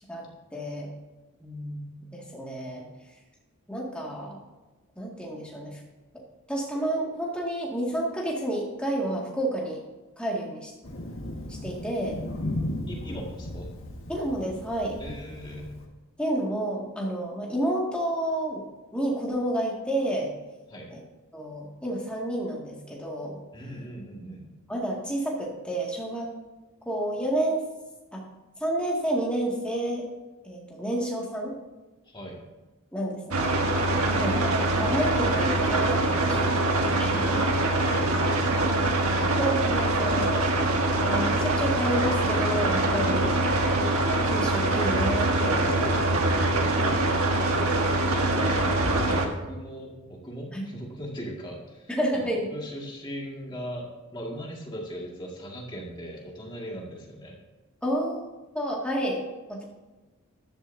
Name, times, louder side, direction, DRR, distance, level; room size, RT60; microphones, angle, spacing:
voice 1, 0.5-0.9 1.4-2.9 3.7-4.4 5.0-5.8 6.5-9.8 10.2-10.7 11.5-12.2 14.1-15.0 16.2-18.6 18.9-20.3 20.9-21.0 21.3-23.4 24.7-26.3 26.9-27.6 28.1-28.2 28.6-30.1 30.4-31.6 32.9-33.6 34.1-36.6 37.0-37.4 39.4-40.7 41.0-43.4 44.2-46.0 50.5-50.7 51.9-52.5 57.8-58.3 58.5-59.2 59.5-59.6, right 1 dB, 5° left, -3 dB, 2.1 m, -30 dB
Thunder, 10.8-15.9, left 1 dB, 65° left, 1.6 m, -36 dB
voice 2, 12.9-13.7 15.0-15.7 20.7-21.0 23.5-24.5 32.0-32.4 36.1-37.1 37.5-38.8 45.6-46.1 47.4-57.4, equal, 20° left, -2 dB, 2.0 m, -39 dB
sound 1, 33.3-49.3, right 2 dB, 80° right, 1.5 m, -24 dB
14.5 x 12.0 x 2.7 m, 1.2 s
head